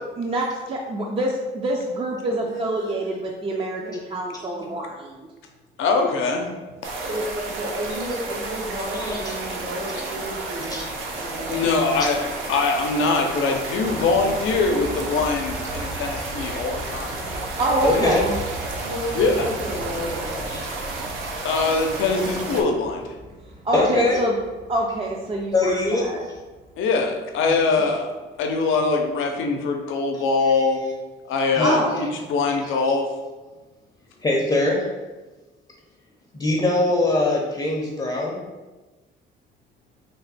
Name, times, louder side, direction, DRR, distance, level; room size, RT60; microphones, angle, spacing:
voice 1, 0.2-5.3 17.6-18.4 23.6-24.4 24.7-26.2 31.6-32.1, right 1 dB, 25° right, -1 dB, 0.4 m, -26 dB
voice 2, 2.3-3.2 3.5-3.9 4.4-4.8 7.0-10.8 11.1-11.7 17.6-18.3 18.8-20.6 23.7-24.1, equal, 70° right, -2 dB, 0.9 m, -32 dB
voice 3, 5.8-6.5 11.5-12.2 12.5-17.1 19.2-19.5 21.4-23.0 26.8-28.1 28.4-30.8 31.3-33.1, left 3 dB, 85° left, 3 dB, 0.6 m, -22 dB
sound 1, 6.8-22.6, right 2 dB, 85° right, 0.6 m, -32 dB
voice 4, 8.9-9.4 10.7-10.9 17.8-18.2 20.5-20.6 23.7-24.2 25.5-26.4 30.1-30.5 31.6-31.7 34.2-34.9 36.3-38.4, left 2 dB, 20° left, -2 dB, 0.6 m, -23 dB
sound 2, 13.7-29.2 29.4-29.5 29.9-30.0, right 1 dB, 45° right, 0.9 m, -40 dB
3.4 x 2.1 x 4.0 m, 1.2 s
cardioid pair, 90°, 20 cm